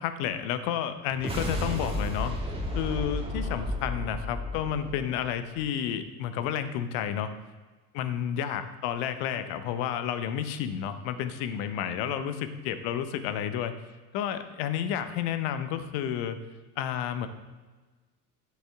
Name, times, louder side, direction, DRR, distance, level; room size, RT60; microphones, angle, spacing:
voice 1, 0.0-2.3 2.7-7.3 7.9-13.7 14.1-16.4 16.8-17.3, left 9 dB, 50° left, 10 dB, 1.0 m, -31 dB
sound 1, 1.1-5.6, left 1 dB, 10° right, 1.8 m, -33 dB
10.5 x 7.3 x 3.7 m, 1.3 s
figure-of-eight pair, 70°, 50 cm